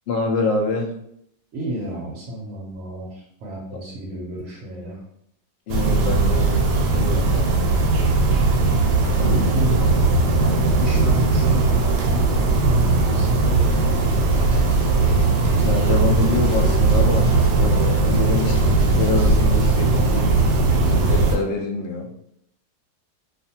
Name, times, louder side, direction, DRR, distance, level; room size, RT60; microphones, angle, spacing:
voice 1, 0.1-0.9 3.7-3.8 5.7-7.7 9.2-9.4 15.6-20.4 20.8-22.1, left 3 dB, 85° left, 1 dB, 0.5 m, -26 dB
voice 2, 1.5-5.0 9.2-14.3, equal, 60° right, -3 dB, 0.8 m, -31 dB
sound 1, 5.7-21.4, right 3 dB, 85° right, 1.2 m, -18 dB
sound 2, 14.0-18.1 18.4-19.8, left 2 dB, 5° right, 0.6 m, -42 dB
2.5 x 2.4 x 2.7 m, 0.74 s
omnidirectional pair, 1.7 m